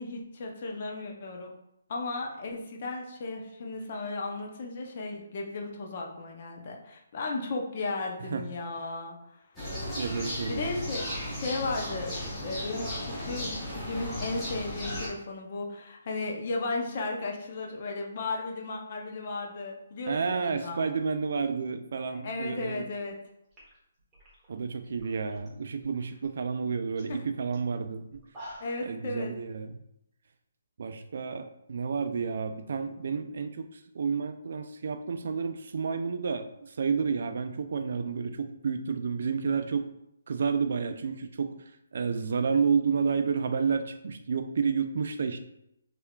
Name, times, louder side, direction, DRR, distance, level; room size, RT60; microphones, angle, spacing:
voice 1, 0.0-1.5 1.9-9.2 10.5-12.1 12.4-20.9 22.1-23.1 27.1-27.2 28.6-29.3, left 3 dB, 40° left, 1 dB, 0.6 m, -35 dB
sound 1, 9.6-15.1, equal, 5° left, 1.0 m, -35 dB
voice 2, 10.0-10.7 20.1-22.8 24.5-28.2 28.9-29.8 30.8-33.7 33.9-39.9 40.3-41.6 41.9-45.4, right 5 dB, 60° right, 8 dB, 0.4 m, -30 dB
sound 2, 23.2-23.3 23.5-25.5 25.8-26.3 26.6-26.7 26.9-27.1 27.5-27.6 28.1-28.9, equal, 10° right, 1.1 m, -48 dB
3.5 x 3.3 x 2.3 m, 0.81 s
hypercardioid pair, 165°, 0 cm